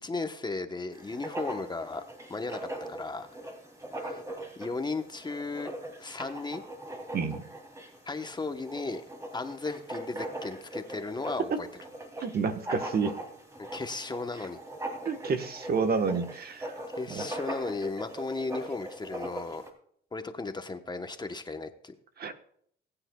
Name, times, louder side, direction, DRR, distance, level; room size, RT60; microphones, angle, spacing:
voice 1, 0.0-2.0 2.3-2.6 2.9-3.3 4.0-4.2 4.6-5.7 6.0-6.6 8.1-9.0 9.3-11.7 13.7-14.6 16.9-19.6 20.1-21.9, left 3 dB, 20° left, 7 dB, 1.0 m, -35 dB
Writing, 0.9-19.7, right 1 dB, 15° right, 2.6 m, -41 dB
voice 2, 7.1-7.4 11.5-11.6 12.2-13.2 15.0-16.8 17.1-17.3 22.2-22.3, right 5 dB, 50° right, 7 dB, 1.2 m, -29 dB
20.5 x 8.9 x 2.3 m, 0.64 s
cardioid pair, 90°, 20 cm